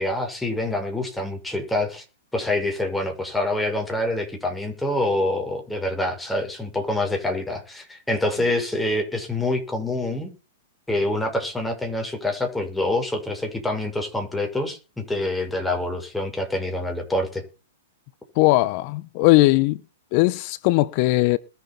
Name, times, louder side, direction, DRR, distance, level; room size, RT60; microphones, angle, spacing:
voice 1, 0.0-2.0 2.3-10.3 10.9-17.4, left 1 dB, 5° left, 6.5 m, -26 dB
voice 2, 18.4-19.8 20.1-21.4, left 19 dB, 45° left, 1.0 m, -19 dB
21.0 x 8.2 x 5.9 m
hypercardioid pair, 125°, 0 cm